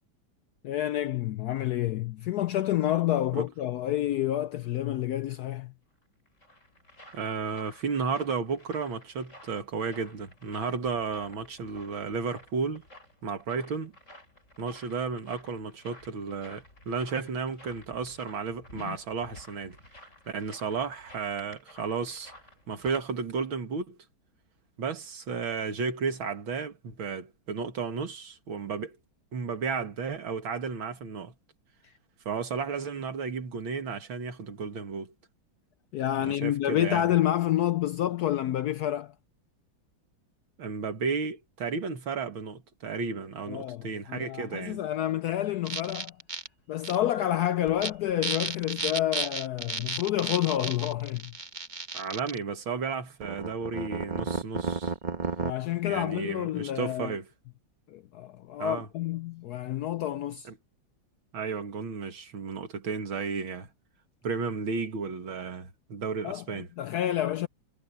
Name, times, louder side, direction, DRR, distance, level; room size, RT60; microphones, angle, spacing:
voice 1, 0.6-5.7 18.8-19.0 35.9-39.1 43.5-46.2 46.7-51.3 55.4-57.1 57.9-60.5 66.2-67.5, left 12 dB, 75° left, 0.9 m, -29 dB
sound 1, 6.0-23.0, left 1 dB, 35° left, 8.5 m, -53 dB
voice 2, 7.1-12.9 13.2-13.9 14.6-19.8 20.3-22.3 22.7-24.0 24.8-29.0 29.3-31.3 32.3-35.1 36.2-37.1 40.6-44.8 51.9-54.9 55.8-57.3 58.6-58.9 60.4-60.6 61.3-63.7 64.2-66.7, right 5 dB, 85° right, 2.7 m, -33 dB
sound 2, 45.7-46.5 46.8-47.0 47.7-47.9 48.2-52.4 53.2-55.5, right 4 dB, 25° right, 1.3 m, -33 dB
omnidirectional pair, 2.1 m